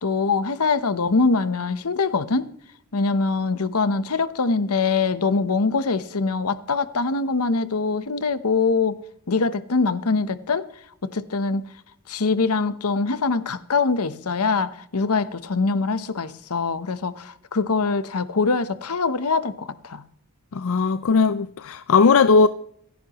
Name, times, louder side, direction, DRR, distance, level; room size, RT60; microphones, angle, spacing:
voice 1, 0.0-2.5 2.9-9.0 9.3-10.7 11.0-11.7 12.1-20.0, left 4 dB, 85° left, 0.9 m, -23 dB
voice 2, 20.5-22.5, left 4 dB, 65° left, 0.5 m, -18 dB
26.0 x 10.5 x 3.0 m
head